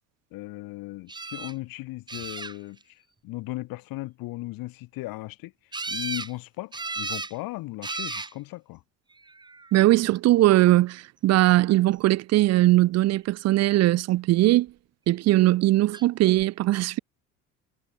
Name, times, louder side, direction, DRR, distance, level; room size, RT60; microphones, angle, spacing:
voice 1, 0.3-2.8 3.2-5.5 5.9-8.8, left 19 dB, 75° left, 3.3 m, -36 dB
sound 1, 1.1-1.5 2.1-2.8 5.7-6.3 6.7-7.3 7.8-8.3 9.2-9.7 15.9-16.0 16.4-16.5, right 3 dB, 10° right, 1.0 m, -34 dB
voice 2, 9.7-14.7 15.1-17.0, right 16 dB, 45° right, 0.5 m, -20 dB
supercardioid pair, 100°, 35 cm